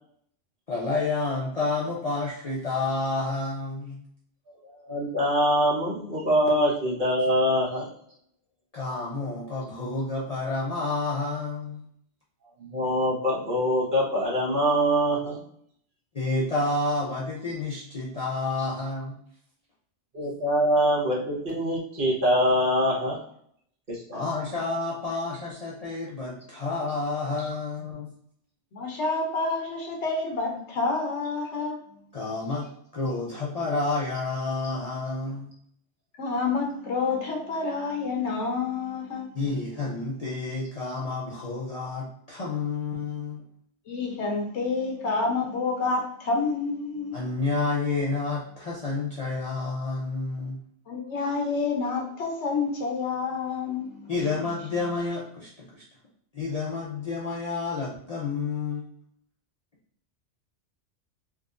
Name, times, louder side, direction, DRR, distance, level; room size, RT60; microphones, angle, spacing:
voice 1, 0.7-4.0 8.7-11.8 16.1-19.2 24.1-28.1 32.1-32.7 32.9-35.5 39.3-43.4 47.1-50.6 54.1-55.8 56.3-58.8, left 3 dB, 40° left, -6 dB, 0.6 m, -29 dB
voice 2, 4.6-7.9 12.6-15.4 20.1-23.2 23.9-24.2, equal, 45° right, -5 dB, 1.2 m, -24 dB
voice 3, 28.7-31.8 36.2-39.3 43.9-47.2 50.9-54.1, left 4 dB, 70° left, 1 dB, 1.1 m, -28 dB
3.6 x 2.7 x 2.4 m, 0.67 s
omnidirectional pair, 1.2 m